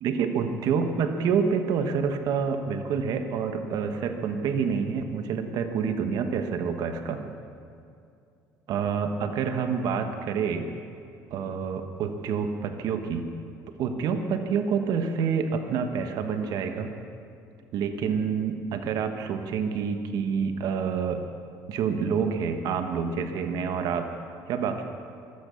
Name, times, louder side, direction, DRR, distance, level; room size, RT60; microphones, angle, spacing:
voice 1, 0.0-7.2 8.7-10.7 11.3-13.3 13.8-16.9 17.7-21.2 21.7-24.1 24.5-24.8, right 6 dB, 65° right, 7 dB, 1.3 m, -27 dB
15.0 x 12.5 x 7.0 m, 2.5 s
cardioid pair, 110°, 7 cm